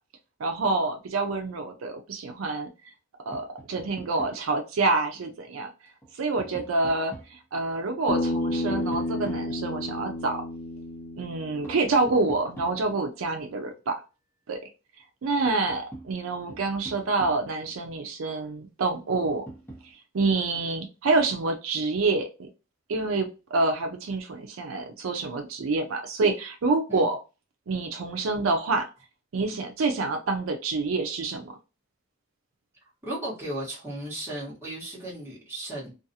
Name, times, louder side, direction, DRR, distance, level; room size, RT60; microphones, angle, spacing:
voice 1, 0.4-2.7 3.3-5.7 6.1-10.4 11.2-14.0 14.5-14.6 15.2-19.4 20.1-22.5 22.9-27.2 27.7-28.9 29.3-31.5, right 3 dB, 75° right, 0.4 m, -27 dB
Tap, 3.3-4.5 5.9-7.4 8.7-10.1 11.6-13.2 15.0-15.1 15.5-17.6 19.2-19.9, right 2 dB, 10° left, 0.9 m, -45 dB
Bass guitar, 8.1-12.3, left 1 dB, 50° left, 0.5 m, -31 dB
voice 2, 33.0-35.9, right 1 dB, 10° right, 1.3 m, -35 dB
2.5 x 2.3 x 2.7 m
head